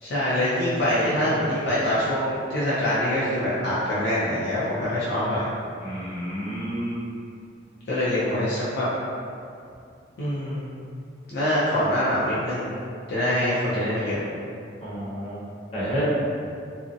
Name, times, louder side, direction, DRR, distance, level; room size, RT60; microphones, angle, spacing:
voice 1, 0.0-5.5 7.9-8.9 10.2-10.7 11.3-12.7 13.1-14.2, left 1 dB, 65° left, -10 dB, 0.5 m, -24 dB
voice 2, 5.8-7.0 14.8-15.4 15.7-16.2, equal, 30° left, -11 dB, 0.8 m, -29 dB
2.5 x 2.0 x 2.6 m, 2.4 s
head